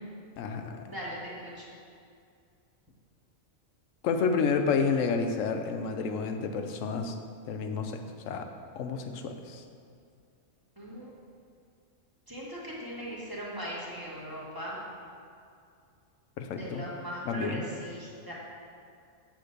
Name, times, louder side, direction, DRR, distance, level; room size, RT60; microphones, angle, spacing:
voice 1, 0.4-0.9 4.0-7.2 7.5-8.5 8.8-9.6 16.4-16.9 17.3-17.7, left 5 dB, 75° left, 6 dB, 1.0 m, -30 dB
voice 2, 0.9-1.7 10.8-11.1 12.3-14.8 16.6-18.3, equal, 15° right, -6 dB, 1.5 m, -39 dB
8.2 x 3.5 x 6.6 m, 2.4 s
omnidirectional pair, 1.3 m